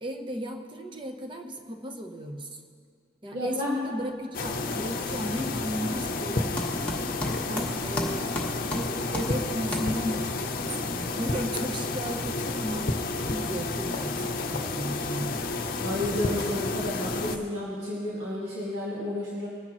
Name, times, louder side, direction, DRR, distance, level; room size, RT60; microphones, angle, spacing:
voice 1, 0.0-2.6 3.2-8.3 8.7-12.9 13.2-15.5, equal, 25° right, 3 dB, 0.9 m, -35 dB
voice 2, 3.3-3.7 15.8-19.5, left 1 dB, 75° right, -7 dB, 2.0 m, -31 dB
sound 1, 3.8-4.2 4.5-10.3, left 1 dB, 10° left, 1.3 m, -36 dB
sound 2, 4.3-17.4, left 3 dB, 50° left, 0.7 m, -31 dB
21.5 x 10.5 x 3.0 m, 2.2 s
head